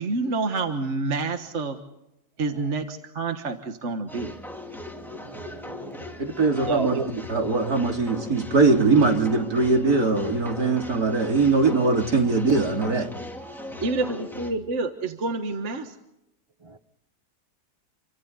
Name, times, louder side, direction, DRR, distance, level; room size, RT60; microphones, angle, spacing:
voice 1, 0.0-1.8 2.4-4.3 13.8-15.9, right 3 dB, 45° right, 6 dB, 1.7 m, -28 dB
sound 1, 4.1-14.5, left 2 dB, ahead, 2.9 m, -39 dB
voice 2, 4.9-6.2 6.7-7.1 13.7-13.8 16.6-16.8, right 3 dB, 25° right, 10 dB, 0.8 m, -32 dB
voice 3, 6.2-7.0 7.3-13.1, right 3 dB, 60° right, 2 dB, 3.5 m, -21 dB
29.0 x 24.5 x 4.1 m, 0.86 s
omnidirectional pair, 1.8 m